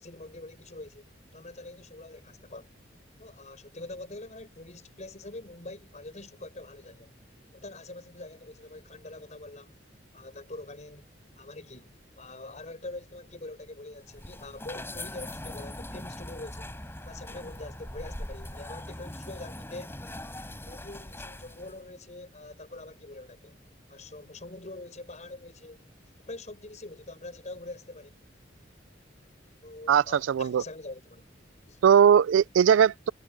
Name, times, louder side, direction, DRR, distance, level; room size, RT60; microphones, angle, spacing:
voice 1, 0.0-2.7 3.2-7.1 7.5-9.8 10.1-11.1 11.4-16.7 17.0-20.0 20.6-23.6 23.9-25.9 26.3-28.2 29.6-31.2 31.7-31.8, left 2 dB, 40° left, 5.4 m, -44 dB
sound 1, 14.0-21.8, left 1 dB, 15° left, 4.3 m, -41 dB
voice 2, 29.9-30.6 31.8-33.1, right 8 dB, 90° right, 0.3 m, -20 dB
head